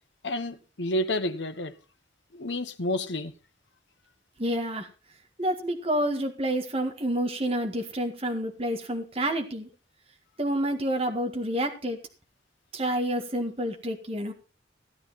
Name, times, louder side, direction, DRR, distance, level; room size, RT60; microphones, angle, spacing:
voice 1, 0.2-1.7 2.3-3.3, left 1 dB, 80° left, 1.2 m, -30 dB
voice 2, 4.4-4.9 5.4-9.7 10.4-12.0 12.7-14.3, right 1 dB, 35° right, 1.8 m, -28 dB
16.5 x 9.8 x 4.2 m
head